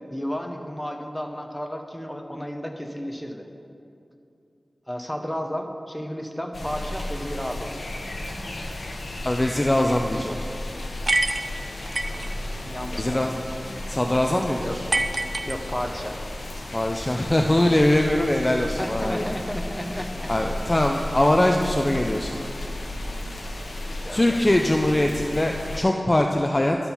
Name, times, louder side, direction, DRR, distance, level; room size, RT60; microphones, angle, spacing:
voice 1, 0.1-3.5 4.9-7.7 12.7-13.3 14.6-14.8 15.4-16.2 18.8-20.3 23.9-24.4, equal, 10° left, 3 dB, 0.8 m, -32 dB
sound 1, 6.5-25.8, left 1 dB, 80° left, 1.0 m, -34 dB
voice 2, 9.2-10.4 12.9-13.3 13.9-14.9 16.7-19.2 20.3-22.4 24.1-26.8, left 1 dB, 25° left, 3 dB, 0.4 m, -22 dB
sound 2, 11.1-12.3 14.9-16.1, right 2 dB, 45° right, 0.4 m, -26 dB
11.5 x 4.4 x 5.5 m, 2.7 s
wide cardioid pair, 60°, 0 cm